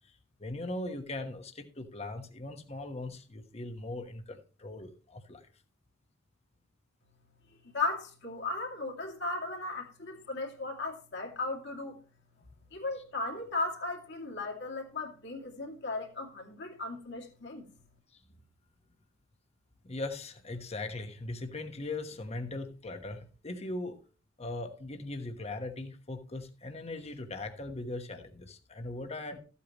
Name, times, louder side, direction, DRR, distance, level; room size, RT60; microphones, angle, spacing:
voice 1, 0.4-5.4 18.3-18.4 19.8-24.0 24.4-29.4, left 2 dB, 30° left, 1.2 m, -39 dB
voice 2, 7.6-12.0 12.7-17.6, left 3 dB, 60° left, 2.6 m, -36 dB
14.0 x 8.5 x 3.0 m
head